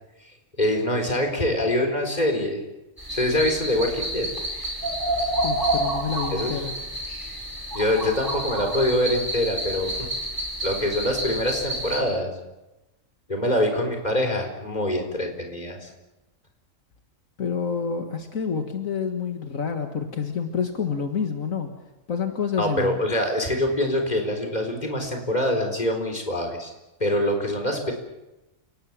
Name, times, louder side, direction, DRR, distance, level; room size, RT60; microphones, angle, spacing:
voice 1, 0.6-2.6 3.1-4.3 6.3-6.6 7.7-10.1 10.6-12.3 13.3-15.9 22.6-26.7 27.0-27.9, left 1 dB, 30° left, 4 dB, 4.4 m, -24 dB
sound 1, 3.0-12.0, right 1 dB, 15° right, 6.1 m, -29 dB
voice 2, 5.2-6.7 17.4-21.7 22.1-23.0, left 6 dB, 70° left, 5 dB, 2.1 m, -28 dB
30.0 x 18.5 x 7.4 m, 0.99 s
omnidirectional pair, 1.4 m